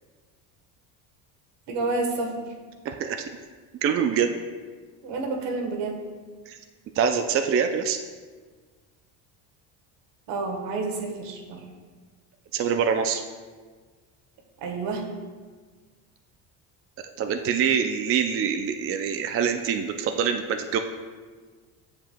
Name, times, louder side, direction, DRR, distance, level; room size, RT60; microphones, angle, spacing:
voice 1, 1.7-2.5 5.0-6.0 10.3-11.6 14.6-15.1, right 3 dB, 65° right, 2 dB, 1.3 m, -29 dB
voice 2, 2.8-3.2 3.8-4.3 6.5-6.6 7.0-8.0 12.5-13.2 17.0-20.8, right 7 dB, 35° right, 6 dB, 0.4 m, -25 dB
7.7 x 7.1 x 2.2 m, 1.5 s
supercardioid pair, 95°, 44 cm